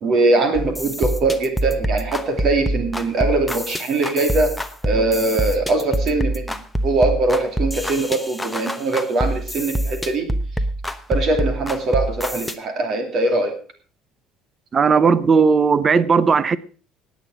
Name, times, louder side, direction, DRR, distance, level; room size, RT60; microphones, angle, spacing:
voice 1, 0.0-4.5 4.8-6.6 6.8-10.3 11.1-13.5, right 2 dB, 40° right, 2.7 m, -21 dB
sound 1, 0.5-12.5, right 1 dB, 5° left, 1.0 m, -25 dB
voice 2, 14.7-16.6, right 5 dB, 25° right, 0.7 m, -16 dB
17.0 x 9.4 x 4.9 m
cardioid pair, 155°, 0 cm